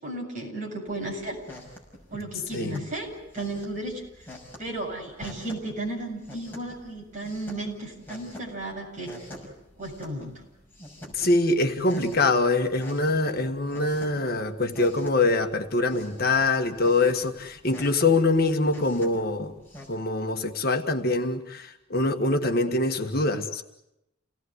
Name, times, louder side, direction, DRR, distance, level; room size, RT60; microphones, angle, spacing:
voice 1, 0.0-1.4 2.1-4.0 4.6-9.2 9.8-10.4, right 1 dB, 40° right, 7.6 m, -34 dB
sound 1, 0.8-19.9, left 1 dB, 10° left, 6.0 m, -47 dB
voice 2, 2.5-2.8 11.1-19.5 19.9-23.6, left 2 dB, 50° left, 1.6 m, -24 dB
29.5 x 18.5 x 8.1 m
head